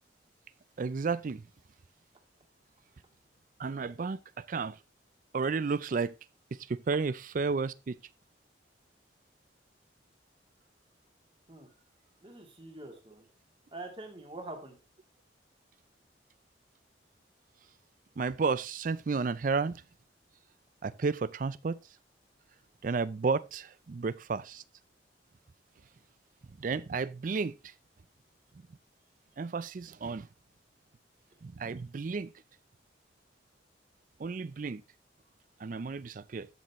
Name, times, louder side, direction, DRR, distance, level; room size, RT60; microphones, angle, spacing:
voice 1, 0.8-1.4 3.6-4.8 5.3-6.1 6.7-8.0 18.2-19.8 20.8-21.8 22.8-24.6 26.6-27.5 29.4-30.3 31.4-32.3 34.2-34.8 35.6-36.5, right 4 dB, 45° right, 0.4 m, -32 dB
voice 2, 12.2-13.2 13.7-14.7, right 2 dB, 30° right, 2.4 m, -44 dB
12.0 x 6.8 x 3.0 m
head